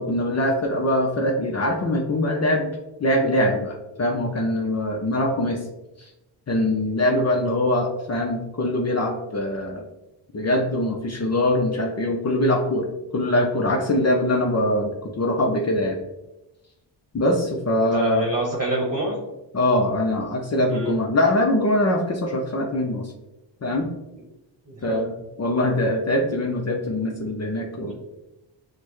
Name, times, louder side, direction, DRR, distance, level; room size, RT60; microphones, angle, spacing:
voice 1, 0.0-2.7 3.0-5.6 6.5-9.8 10.3-12.9 13.1-16.0 17.1-18.3 19.5-23.1 23.6-23.9 24.8-25.1 25.4-27.9, left 1 dB, 35° left, 1 dB, 0.6 m, -23 dB
voice 2, 17.9-19.2 20.7-20.9 24.7-25.0 27.8-27.9, right 1 dB, 30° right, -3 dB, 1.0 m, -26 dB
6.5 x 2.2 x 3.0 m, 0.96 s
cardioid pair, 85°, 47 cm